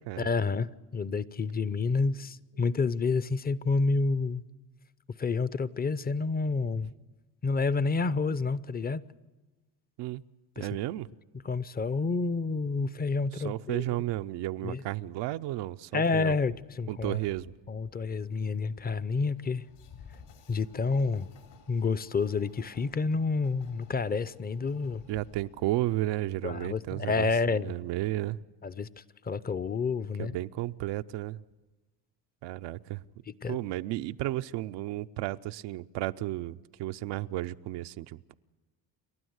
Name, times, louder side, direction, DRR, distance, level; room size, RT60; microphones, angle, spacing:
voice 1, 0.2-4.4 5.2-6.9 7.4-9.0 10.6-10.7 11.4-13.8 14.6-14.8 15.9-17.2 17.7-19.7 20.5-21.3 21.7-25.0 26.4-27.7 28.6-28.9 29.2-30.4 33.4-33.6, left 4 dB, 25° left, 0.6 m, -29 dB
voice 2, 10.6-11.1 13.3-16.4 16.9-17.5 25.1-28.4 30.2-31.4 32.4-33.0 33.5-38.3, right 16 dB, 85° right, 0.6 m, -33 dB
Train, 16.3-26.7, left 6 dB, 75° left, 3.7 m, -56 dB
29.0 x 12.5 x 8.0 m
cardioid pair, 95°, 41 cm